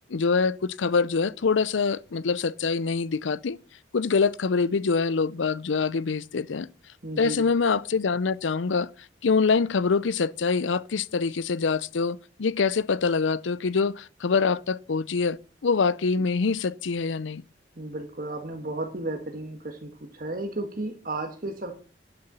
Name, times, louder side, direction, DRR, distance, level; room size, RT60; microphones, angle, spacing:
voice 1, 0.1-3.6 3.9-6.7 7.2-8.9 9.2-17.4, left 5 dB, 90° left, 0.6 m, -25 dB
voice 2, 7.0-7.5 17.8-21.7, right 2 dB, 50° right, 1.5 m, -33 dB
11.5 x 6.8 x 6.8 m
head